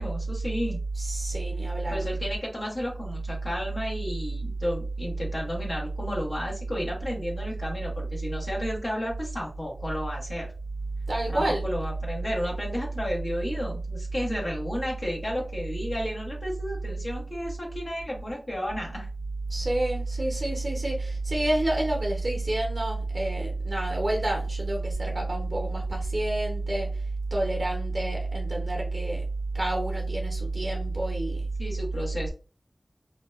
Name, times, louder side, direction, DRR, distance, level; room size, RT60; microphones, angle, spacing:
voice 1, 0.0-0.8 1.9-10.5 11.3-19.1 31.6-32.3, equal, 55° left, -2 dB, 1.0 m, -32 dB
voice 2, 0.9-2.0 11.1-11.7 19.5-29.2 29.5-31.4, right 2 dB, 55° right, 0 dB, 0.6 m, -28 dB
2.7 x 2.1 x 2.3 m, 0.35 s
wide cardioid pair, 55°, 0 cm